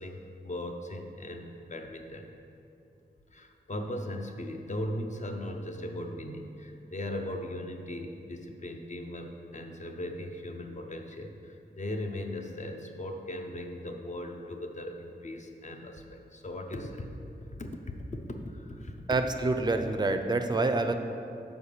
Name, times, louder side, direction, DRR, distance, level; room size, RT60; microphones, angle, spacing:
voice 1, 0.0-2.3 3.3-17.1 17.6-18.0 18.5-18.9, left 1 dB, 45° left, 4 dB, 0.7 m, -38 dB
voice 2, 19.1-20.9, right 3 dB, 25° right, 7 dB, 0.4 m, -27 dB
5.6 x 5.0 x 6.6 m, 2.7 s
wide cardioid pair, 95°, 18 cm